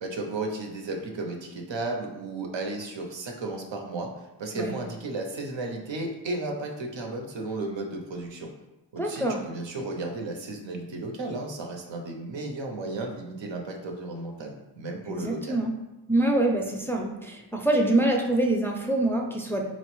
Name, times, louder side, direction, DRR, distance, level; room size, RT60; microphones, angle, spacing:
voice 1, 0.0-4.1 4.4-8.5 8.9-15.6, right 2 dB, 90° right, 2 dB, 0.6 m, -34 dB
voice 2, 9.0-9.4 15.1-15.8 16.1-19.6, right 1 dB, 5° left, 0 dB, 0.3 m, -25 dB
4.2 x 2.0 x 3.0 m, 1.0 s
wide cardioid pair, 55°, 43 cm